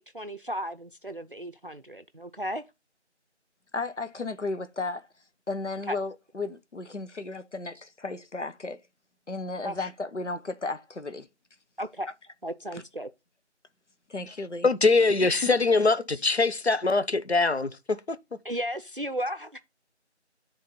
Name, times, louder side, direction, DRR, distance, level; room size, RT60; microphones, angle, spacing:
voice 1, 0.0-2.6 5.9-6.0 9.6-9.9 11.8-12.1 12.4-13.1 15.2-15.5 16.1-16.2 18.4-19.6, equal, 50° right, 0.5 m, -35 dB
voice 2, 3.7-5.1 5.5-8.8 9.3-11.3 12.7-12.8 14.1-14.7 15.4-15.5, left 3 dB, 90° left, 1.1 m, -34 dB
voice 3, 14.6-18.2, left 3 dB, 65° left, 0.9 m, -23 dB
8.6 x 3.7 x 5.3 m
figure-of-eight pair, 175°, 35 cm